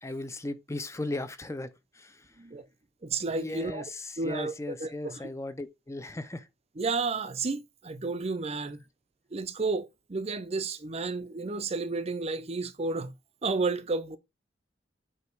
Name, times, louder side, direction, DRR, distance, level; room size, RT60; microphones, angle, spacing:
voice 1, 0.0-2.4 3.3-6.5, left 2 dB, 15° left, 0.5 m, -37 dB
voice 2, 3.0-3.9 4.2-5.2 6.8-8.8 9.3-13.1 13.4-14.2, right 3 dB, 35° right, 0.6 m, -32 dB
8.3 x 2.9 x 4.6 m
head